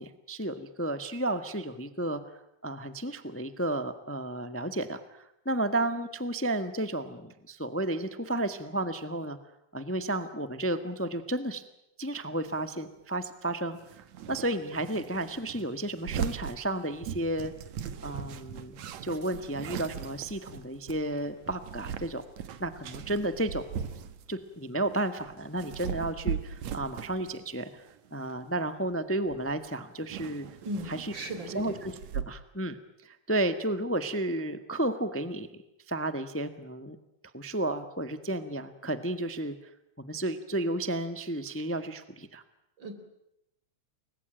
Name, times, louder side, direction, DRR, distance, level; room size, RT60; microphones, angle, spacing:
voice 1, 0.0-2.2 2.6-9.4 9.7-11.6 12.0-13.8 14.3-17.5 18.0-22.2 22.6-23.6 24.3-27.8 28.1-30.5 30.9-31.1 31.5-35.6 35.9-37.0 37.3-39.5 40.0-42.4, right 1 dB, 10° left, 10 dB, 0.6 m, -32 dB
sound 1, 12.5-12.6 13.8-24.5 24.8-27.4 27.7-28.1 28.9-29.0 29.3-29.7 29.9-32.2, right 8 dB, 70° right, 2.6 m, -39 dB
voice 2, 30.6-31.7 42.8-42.9, right 1 dB, 40° right, 8 dB, 4.6 m, -37 dB
29.5 x 22.0 x 9.1 m, 0.83 s
omnidirectional pair, 3.3 m